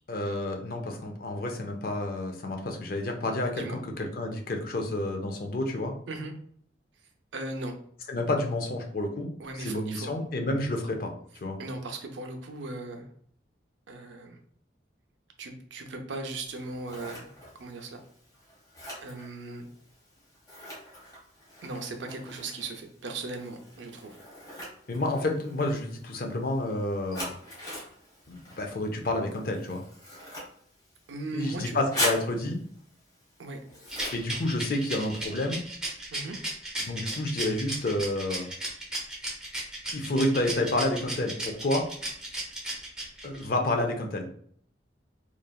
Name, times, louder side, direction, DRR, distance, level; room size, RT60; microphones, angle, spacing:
voice 1, 0.1-5.9 8.1-9.3 9.6-11.1 11.4-11.6 24.9-27.3 28.3-29.8 31.3-32.6 34.1-35.6 36.9-38.5 39.9-41.9 43.2-44.3, left 1 dB, 50° left, 3 dB, 0.5 m, -29 dB
voice 2, 7.3-7.8 9.4-10.1 11.6-13.1 13.9-14.4 15.4-17.3 17.5-18.0 19.0-19.7 21.6-24.2 31.1-31.8 33.4-33.6 36.1-36.4, right 2 dB, 80° right, 4 dB, 0.5 m, -38 dB
Scissors, 16.5-35.3, left 1 dB, 20° left, 1.0 m, -41 dB
Rattle, 33.9-43.4, right 1 dB, 5° right, 0.7 m, -35 dB
3.1 x 2.4 x 2.3 m, 0.62 s
head